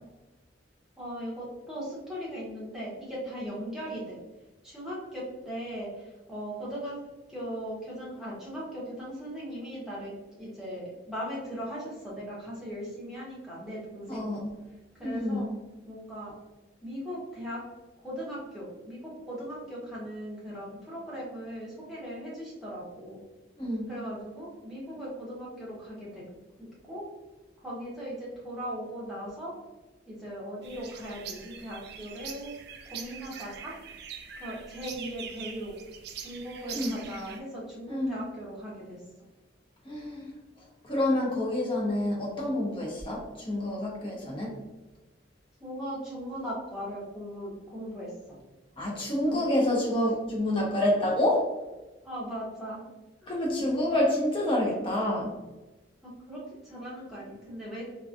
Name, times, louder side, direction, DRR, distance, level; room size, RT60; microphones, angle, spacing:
voice 1, 1.0-4.2 4.6-7.0 7.3-14.4 15.0-15.5 15.8-16.3 16.8-17.6 18.0-19.0 19.3-23.2 23.9-26.2 26.6-27.0 27.6-29.5 30.1-32.5 32.9-33.7 34.4-35.7 36.2-39.0 45.6-48.4 49.2-49.4 52.0-52.8 53.5-53.6 56.0-57.9, equal, ahead, -7 dB, 0.9 m, -38 dB
voice 2, 14.1-14.5 15.0-15.5 23.6-23.9 36.7-36.9 37.9-38.2 39.8-40.3 40.8-44.6 48.8-51.5 53.3-55.3, left 1 dB, 30° left, -3 dB, 0.8 m, -28 dB
sound 1, 30.6-37.4, right 7 dB, 60° right, 0.3 m, -43 dB
3.0 x 2.3 x 2.4 m, 1.1 s
head